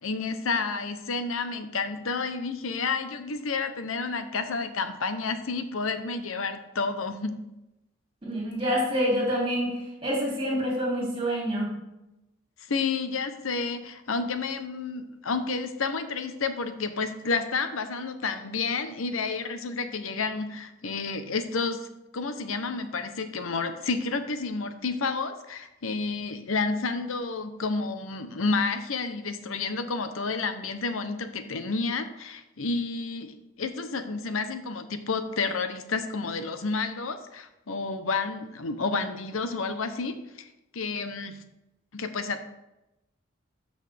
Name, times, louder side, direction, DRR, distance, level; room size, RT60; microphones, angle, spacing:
voice 1, 0.0-7.4 12.7-21.9 22.1-40.5 40.7-41.4 41.9-42.4, left 4 dB, 80° left, 9 dB, 0.8 m, -30 dB
voice 2, 8.2-9.7 10.0-11.7, equal, 25° right, -4 dB, 2.9 m, -27 dB
12.0 x 5.5 x 3.4 m, 0.94 s
head